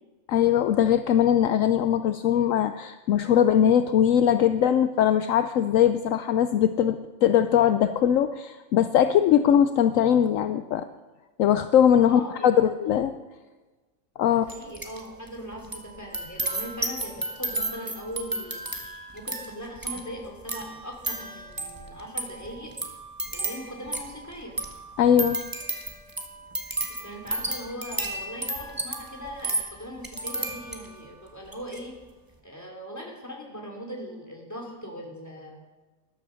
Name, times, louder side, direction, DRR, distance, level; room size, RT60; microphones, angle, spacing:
voice 1, 0.3-10.9 11.4-13.1 14.2-14.5 25.0-25.4, left 9 dB, 70° left, 10 dB, 0.9 m, -21 dB
voice 2, 12.1-12.7 14.5-18.6 19.1-22.7 23.3-24.6 27.0-31.9 32.4-35.6, equal, 10° left, 0 dB, 2.9 m, -39 dB
sound 1, 14.5-15.0 15.3-31.0 31.5-31.8, right 2 dB, 15° right, 1.4 m, -33 dB
13.5 x 11.5 x 6.2 m, 1.2 s
omnidirectional pair, 1.5 m